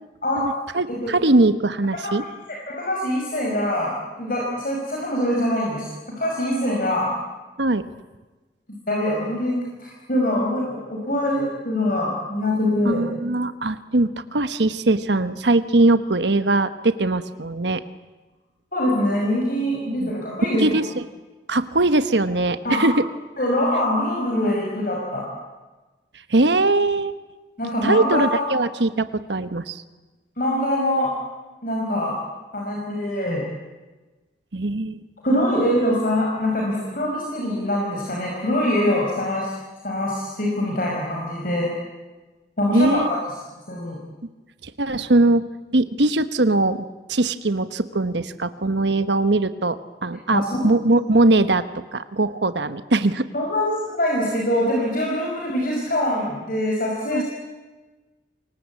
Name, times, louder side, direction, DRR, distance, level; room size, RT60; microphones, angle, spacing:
voice 1, 0.4-2.2 7.6-7.9 12.8-17.8 19.9-20.1 20.5-20.9 21.5-23.0 26.3-27.1 27.8-29.8 34.5-35.0 42.7-43.1 44.6-45.5 45.7-51.7 51.9-53.3 57.1-57.2, right 2 dB, 80° right, 11 dB, 1.2 m, -21 dB
voice 2, 2.5-7.1 8.9-13.1 18.7-20.8 22.6-22.8 23.4-25.2 27.6-28.5 30.4-31.1 31.6-32.1 32.5-33.4 35.2-39.5 39.8-41.7 42.6-43.2 43.7-44.0 50.3-50.7 53.3-57.2, left 1 dB, 50° left, -2 dB, 5.6 m, -23 dB
28.0 x 23.5 x 8.5 m, 1.2 s
head